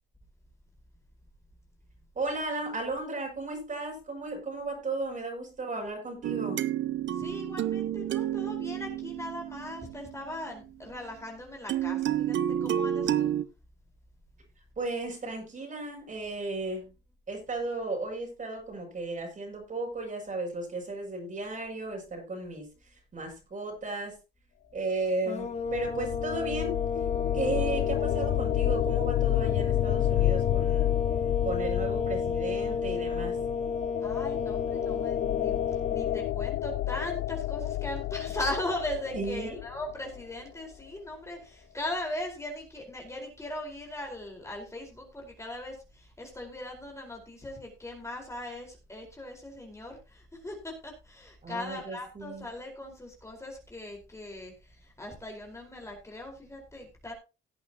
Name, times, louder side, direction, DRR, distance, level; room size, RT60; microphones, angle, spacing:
voice 1, 2.1-6.6 14.8-16.9 17.3-24.1 24.7-26.8 27.3-30.9 31.4-33.4 39.1-39.6 51.4-52.4, right 2 dB, 40° right, 1 dB, 6.8 m, -35 dB
sound 1, 6.2-10.5 11.7-13.4, right 11 dB, 70° right, 0.9 m, -30 dB
voice 2, 7.1-13.3 34.0-57.1, left 1 dB, 15° left, 1 dB, 4.5 m, -39 dB
sound 2, 25.3-36.3, left 5 dB, 35° left, 2.0 m, -32 dB
sound 3, 25.4-40.3, left 15 dB, 80° left, 0.5 m, -30 dB
17.5 x 8.6 x 2.9 m, 0.29 s
cardioid pair, 90°, 20 cm